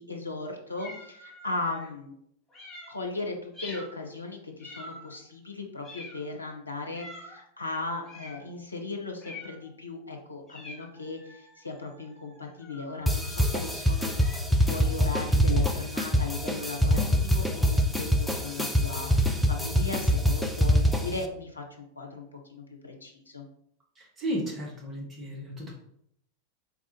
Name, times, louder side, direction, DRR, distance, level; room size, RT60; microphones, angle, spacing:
voice 1, 0.0-2.1 2.9-23.4, left 3 dB, 80° left, 1 dB, 0.8 m, -37 dB
sound 1, 0.8-1.9 2.5-3.0 3.5-4.0 4.6-5.2 5.8-6.4 6.9-7.4 8.0-8.5 9.2-9.7 10.5-14.4, left 2 dB, 15° left, 1.1 m, -46 dB
sound 2, 13.1-21.2, equal, ahead, 0.5 m, -25 dB
voice 2, 24.0-25.7, equal, 20° right, -2 dB, 1.1 m, -34 dB
4.1 x 2.4 x 4.2 m, 0.72 s
figure-of-eight pair, 90°, 0 cm